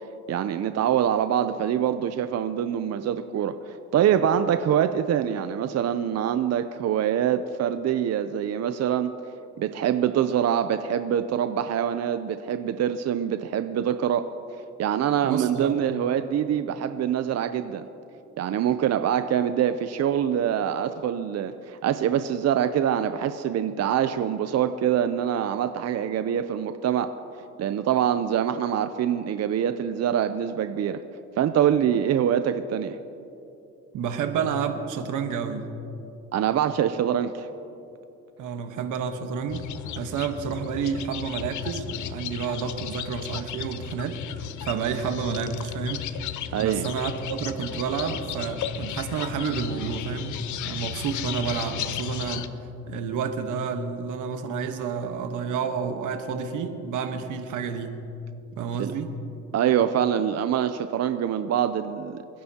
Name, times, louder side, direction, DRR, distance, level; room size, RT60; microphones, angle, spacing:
voice 1, 0.3-9.1 9.6-14.3 14.8-17.9 18.4-27.1 27.6-31.0 31.4-33.0 36.3-37.5 46.5-46.9 58.8-58.9 59.5-62.2, right 9 dB, 60° right, 10 dB, 0.6 m, -24 dB
voice 2, 15.2-15.8 33.9-35.7 38.4-39.7 39.9-44.2 44.6-46.0 46.6-52.5 52.9-58.0 58.6-59.1, right 6 dB, 90° right, 6 dB, 1.3 m, -30 dB
sound 1, 39.5-52.5, left 10 dB, 75° left, 0.7 m, -35 dB
29.5 x 10.0 x 2.9 m, 2.8 s
cardioid pair, 90°, 30 cm